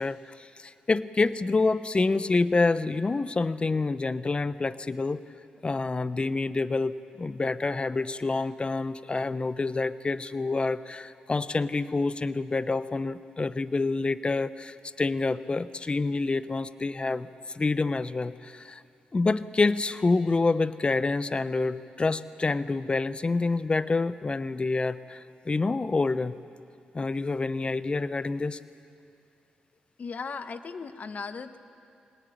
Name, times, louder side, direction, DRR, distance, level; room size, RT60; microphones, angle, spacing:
voice 1, 0.0-5.2 5.6-17.3 17.5-18.8 19.1-26.3 26.9-28.6, left 3 dB, 30° left, 14 dB, 0.9 m, -27 dB
voice 2, 30.0-31.6, left 5 dB, 50° left, 10 dB, 1.3 m, -37 dB
23.0 x 18.5 x 9.3 m, 2.5 s
supercardioid pair, 55°, 3 cm